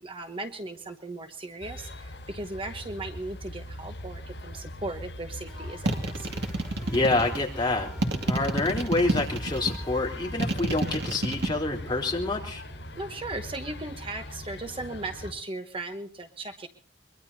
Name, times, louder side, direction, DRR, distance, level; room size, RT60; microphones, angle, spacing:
voice 1, 0.0-6.3 13.0-16.7, right 2 dB, 30° right, 6 dB, 1.0 m, -37 dB
sound 1, 1.6-15.3, left 1 dB, 65° left, 6.8 m, -40 dB
sound 2, 5.4-10.0, left 1 dB, 5° left, 4.1 m, -46 dB
sound 3, 5.8-7.4 8.0-9.8 10.4-11.5, right 2 dB, 65° right, 2.3 m, -28 dB
voice 2, 6.9-12.6, left 2 dB, 25° left, -1 dB, 3.7 m, -27 dB
23.0 x 22.5 x 2.8 m, 0.40 s
head